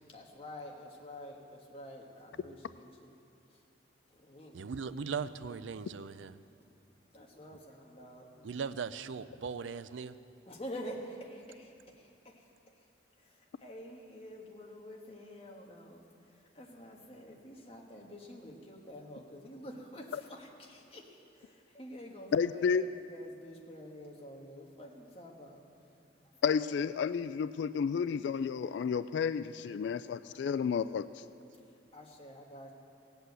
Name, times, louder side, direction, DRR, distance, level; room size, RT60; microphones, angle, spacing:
voice 1, 0.1-3.2 3.5-3.6 4.1-4.7 6.6-6.7 7.1-8.6 10.4-12.9 13.2-26.0 26.4-26.6 31.5-32.7, equal, 30° left, 0 dB, 1.6 m, -48 dB
voice 2, 4.5-6.4 8.4-10.2, right 5 dB, 90° right, 14 dB, 0.5 m, -39 dB
voice 3, 22.3-22.8 26.4-31.1, left 6 dB, 70° left, 14 dB, 0.3 m, -31 dB
17.5 x 8.1 x 8.1 m, 2.6 s
head